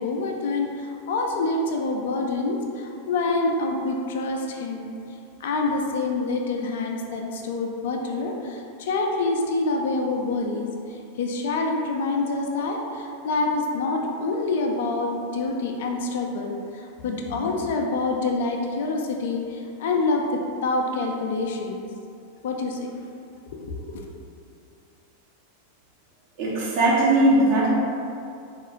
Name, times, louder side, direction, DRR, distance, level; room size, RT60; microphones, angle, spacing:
voice 1, 0.0-4.9 5.4-21.8 22.4-22.9 23.5-24.0, left 3 dB, 55° left, 1 dB, 0.3 m, -26 dB
voice 2, 26.4-27.7, right 1 dB, 50° right, -7 dB, 1.0 m, -19 dB
3.8 x 2.4 x 3.0 m, 2.6 s
figure-of-eight pair, 90°, 0 cm